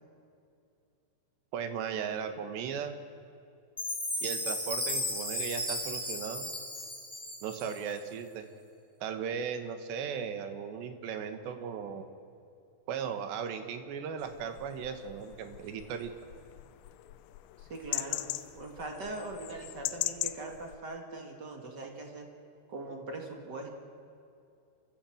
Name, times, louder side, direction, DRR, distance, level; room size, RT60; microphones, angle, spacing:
voice 1, 1.5-3.0 4.2-6.5 7.4-8.5 9.0-12.1 12.9-16.1, right 7 dB, 75° right, 8 dB, 3.5 m, -37 dB
Chime, 3.8-8.0, left 1 dB, ahead, 3.2 m, -35 dB
sound 1, 14.2-20.8, left 16 dB, 90° left, 3.0 m, -40 dB
voice 2, 17.6-18.3 18.5-22.3 22.7-23.7, right 2 dB, 35° right, 2 dB, 2.0 m, -41 dB
29.5 x 15.0 x 7.7 m, 2.6 s
omnidirectional pair, 5.2 m